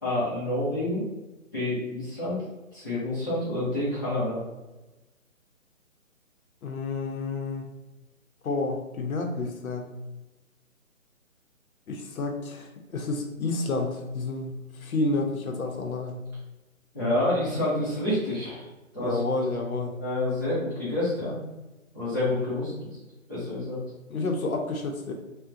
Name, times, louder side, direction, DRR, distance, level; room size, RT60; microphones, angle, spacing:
voice 1, 0.0-1.1 1.5-2.4 2.7-4.4 16.9-18.7 18.9-19.2 20.0-21.3 21.9-22.7 23.3-23.8, left 1 dB, 15° left, -13 dB, 0.6 m, -28 dB
voice 2, 6.6-7.7 8.4-9.9 11.9-16.2 19.0-19.9 24.1-25.1, left 3 dB, 80° left, 3 dB, 0.7 m, -30 dB
3.5 x 2.2 x 2.6 m, 1.1 s
hypercardioid pair, 155°, 42 cm